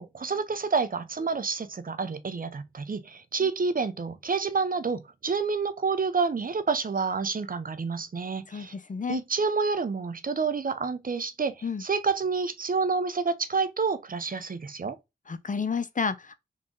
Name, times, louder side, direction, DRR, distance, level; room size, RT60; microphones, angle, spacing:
voice 1, 0.0-8.7 9.1-15.0, right 4 dB, 50° right, 0.7 m, -28 dB
voice 2, 8.5-9.2 11.6-11.8 15.3-16.4, left 5 dB, 45° left, 0.7 m, -30 dB
3.7 x 3.2 x 3.7 m
cardioid pair, 45°, 19 cm